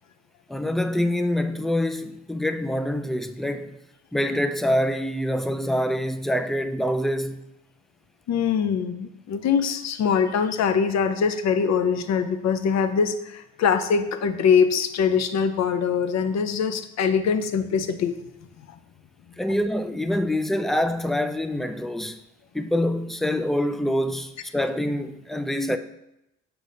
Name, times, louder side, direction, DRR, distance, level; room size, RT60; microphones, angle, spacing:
voice 1, 0.5-3.8 4.1-7.4 19.4-22.2 22.5-25.8, left 1 dB, ahead, 0.3 m, -25 dB
voice 2, 8.3-18.2, left 6 dB, 60° left, 0.6 m, -23 dB
6.5 x 3.0 x 5.2 m
cardioid pair, 90°, 30 cm